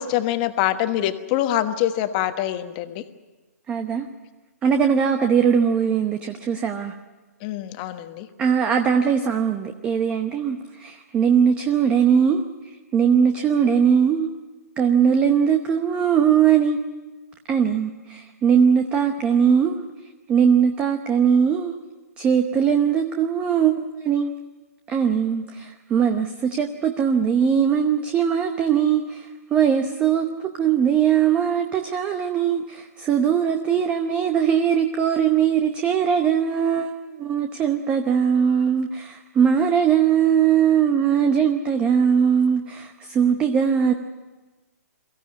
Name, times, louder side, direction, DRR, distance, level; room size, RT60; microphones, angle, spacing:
voice 1, 0.0-3.0 7.4-8.3, left 12 dB, 30° left, 9 dB, 1.2 m, -24 dB
voice 2, 3.7-4.1 4.6-6.9 8.4-14.3 14.8-16.8 17.5-19.8 20.3-21.8 22.2-24.3 24.9-43.9, right 7 dB, 15° right, 6 dB, 0.9 m, -20 dB
23.0 x 15.0 x 9.6 m, 1.2 s
hypercardioid pair, 155°, 9 cm